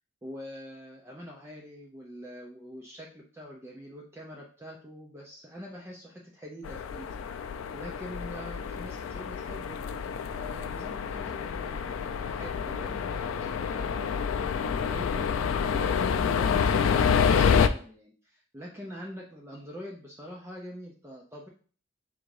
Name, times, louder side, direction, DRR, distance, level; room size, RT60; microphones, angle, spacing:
voice 1, 0.2-7.1 7.7-9.8 10.3-21.5, equal, 15° right, -2 dB, 0.5 m, -44 dB
sound 1, 6.6-17.7, left 6 dB, 85° left, 0.3 m, -28 dB
3.7 x 2.6 x 4.7 m, 0.42 s
head